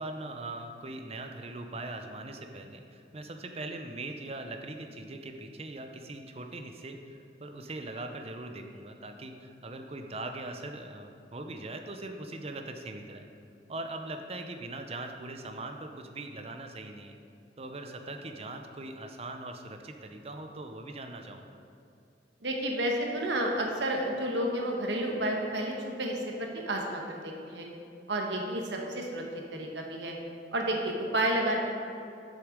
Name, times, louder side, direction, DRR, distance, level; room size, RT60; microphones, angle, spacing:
voice 1, 0.0-13.3 13.7-17.2 17.6-21.5, right 2 dB, 35° right, 5 dB, 0.6 m, -41 dB
voice 2, 22.4-25.7 26.0-27.7 28.1-29.2 29.5-30.1 30.5-31.6, right 1 dB, 80° right, 1 dB, 1.3 m, -31 dB
8.1 x 6.6 x 5.1 m, 2.5 s
head